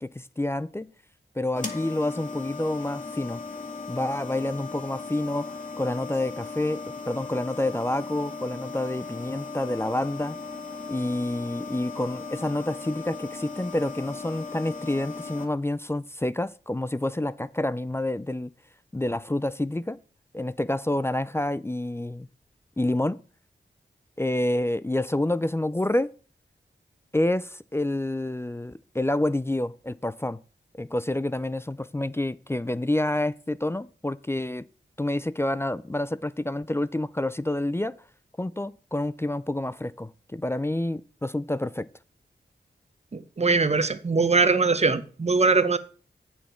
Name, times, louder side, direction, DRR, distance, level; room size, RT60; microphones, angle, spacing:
voice 1, 0.0-0.9 1.4-3.4 3.9-10.4 10.9-18.5 18.9-20.0 20.3-22.3 22.8-23.2 24.2-26.1 27.1-30.4 30.8-34.6 35.0-37.9 38.4-41.9, left 1 dB, 15° left, 0.4 m, -28 dB
sound 1, 1.6-15.5, left 4 dB, 40° left, 1.7 m, -37 dB
voice 2, 43.1-45.8, right 4 dB, 35° right, 0.8 m, -22 dB
8.4 x 7.1 x 4.4 m
wide cardioid pair, 60°, 19 cm